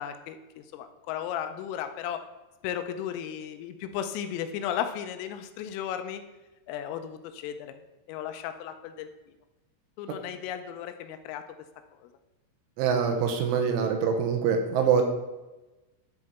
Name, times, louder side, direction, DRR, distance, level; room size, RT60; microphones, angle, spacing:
voice 1, 0.0-2.2 2.6-6.2 6.7-7.7 8.1-9.1 10.0-11.5 12.0-12.1, left 9 dB, 85° left, 8 dB, 3.3 m, -35 dB
voice 2, 12.8-15.0, right 6 dB, 80° right, 5 dB, 3.3 m, -24 dB
12.0 x 4.7 x 4.2 m, 1.1 s
omnidirectional pair, 5.7 m